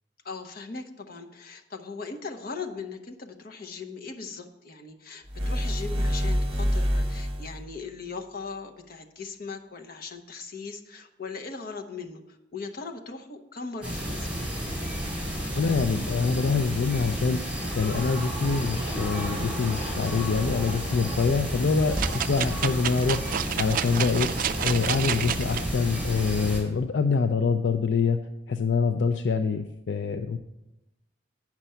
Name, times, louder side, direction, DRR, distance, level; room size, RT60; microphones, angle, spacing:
voice 1, 0.2-14.6, left 4 dB, 55° left, 5 dB, 0.9 m, -39 dB
sound 1, 5.3-7.7, equal, 30° right, 1.1 m, -26 dB
sound 2, 13.8-26.6, equal, 5° right, 3.8 m, -31 dB
voice 2, 15.5-28.2 28.5-30.4, left 5 dB, 75° left, 7 dB, 0.4 m, -25 dB
sound 3, 22.0-25.6 26.2-26.3, right 9 dB, 50° right, 0.3 m, -30 dB
8.9 x 6.0 x 5.6 m, 0.91 s
head